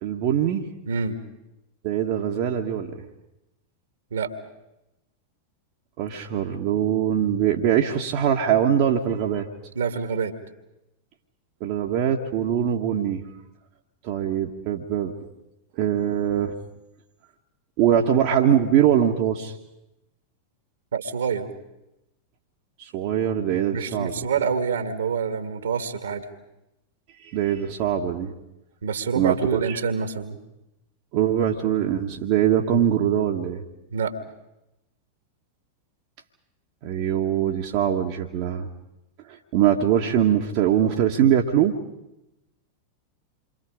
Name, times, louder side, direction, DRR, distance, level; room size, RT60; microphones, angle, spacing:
voice 1, 0.0-0.7 1.8-3.1 6.0-9.5 11.6-13.2 14.0-15.1 15.8-16.5 17.8-19.5 22.8-24.1 27.2-28.3 29.1-29.8 31.1-33.6 36.8-38.7 39.3-41.8, right 9 dB, 45° right, 1 dB, 1.6 m, -22 dB
voice 2, 0.9-1.2 4.1-4.3 9.8-10.3 20.9-21.5 23.7-26.3 28.8-30.4 33.9-34.1, right 6 dB, 65° right, 8 dB, 2.2 m, -26 dB
28.5 x 25.0 x 5.1 m, 0.91 s
figure-of-eight pair, 90°, 0 cm